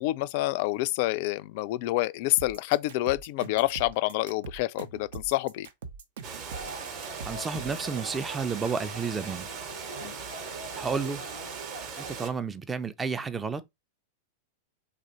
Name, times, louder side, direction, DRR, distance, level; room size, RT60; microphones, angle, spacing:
voice 1, 0.0-5.7 10.0-10.1, left 18 dB, 50° left, 0.3 m, -28 dB
sound 1, 2.4-7.9, right 5 dB, 60° right, 0.6 m, -42 dB
Water, 6.2-12.3, right 6 dB, 40° right, 1.0 m, -40 dB
sound 2, 6.5-12.3, right 2 dB, 80° right, 1.1 m, -43 dB
voice 2, 7.2-9.5 10.7-11.2 12.0-13.6, right 5 dB, 15° right, 0.5 m, -31 dB
3.2 x 2.5 x 4.2 m
figure-of-eight pair, 95°, 0 cm